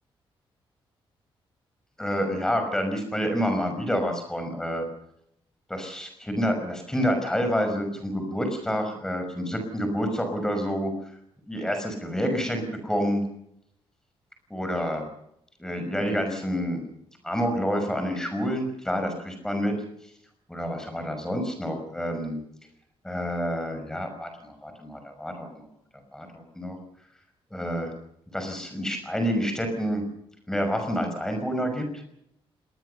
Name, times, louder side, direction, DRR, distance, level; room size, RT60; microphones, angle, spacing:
voice 1, 2.0-4.9 5.7-10.9 11.5-13.3 14.5-15.0 15.6-16.8 17.2-19.7 20.5-22.4 23.0-25.7 26.1-26.8 27.5-27.9 28.3-30.0 30.5-31.8, equal, 5° left, 6 dB, 5.8 m, -28 dB
25.0 x 20.5 x 6.9 m, 0.75 s
wide cardioid pair, 175°, 9 cm